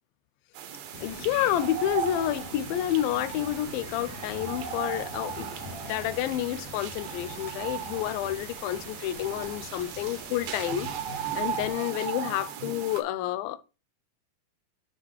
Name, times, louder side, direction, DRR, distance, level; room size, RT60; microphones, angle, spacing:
sound 1, 0.5-13.0, right 9 dB, 70° right, 2.3 m, -37 dB
sound 2, 0.9-11.7, left 3 dB, 65° left, 2.6 m, -44 dB
voice 1, 1.0-5.5 5.8-10.9 11.4-13.6, left 12 dB, 80° left, 2.3 m, -29 dB
9.8 x 4.8 x 3.3 m
omnidirectional pair, 4.2 m